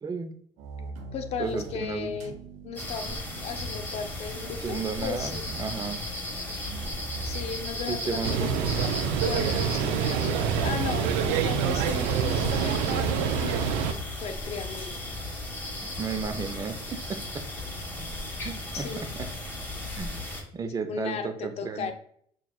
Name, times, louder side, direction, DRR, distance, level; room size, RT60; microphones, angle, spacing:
voice 1, 0.0-0.4 1.4-2.1 4.6-6.0 7.9-8.8 16.0-17.5 18.4-19.3 20.0-20.2 20.5-21.9, right 5 dB, 30° right, 8 dB, 0.6 m, -34 dB
sound 1, 0.6-7.6, right 3 dB, 70° right, 0.8 m, -43 dB
voice 2, 1.1-2.3 2.6-5.4 6.4-6.8 7.2-8.5 9.2-13.8 14.2-15.0 18.7-19.2 20.9-21.9, left 6 dB, 60° left, 7 dB, 0.6 m, -36 dB
sound 2, 2.8-20.4, left 1 dB, 15° left, 1.4 m, -36 dB
sound 3, 8.2-13.9, right 7 dB, 85° right, 0.4 m, -26 dB
6.1 x 2.3 x 2.3 m, 0.62 s
supercardioid pair, 85°, 12 cm